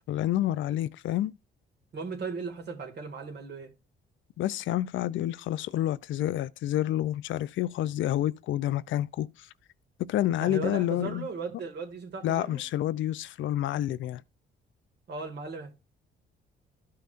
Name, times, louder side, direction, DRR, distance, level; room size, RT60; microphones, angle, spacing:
voice 1, 0.1-1.3 4.4-9.5 10.1-11.3 12.2-14.2, left 13 dB, 75° left, 0.5 m, -29 dB
voice 2, 1.9-3.7 10.4-12.6 15.1-15.7, right 4 dB, 60° right, 2.1 m, -37 dB
13.0 x 5.7 x 2.5 m
cardioid pair, 90°, 20 cm